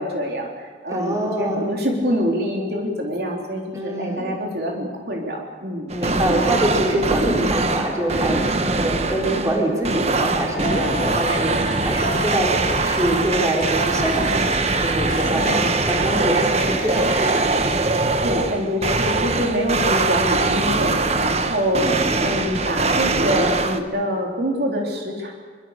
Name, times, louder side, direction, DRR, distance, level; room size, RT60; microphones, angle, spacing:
voice 1, 0.0-5.9 15.3-15.7 18.2-25.3, equal, 55° right, 0 dB, 3.8 m, -25 dB
voice 2, 0.9-1.6 3.7-4.3 5.9-17.4, right 1 dB, 15° right, -1 dB, 4.5 m, -24 dB
sound 1, 5.9-23.8, right 3 dB, 35° right, 1.3 m, -22 dB
sound 2, 10.6-17.5, left 3 dB, 45° left, 2.4 m, -34 dB
24.5 x 24.0 x 6.7 m, 1.5 s
head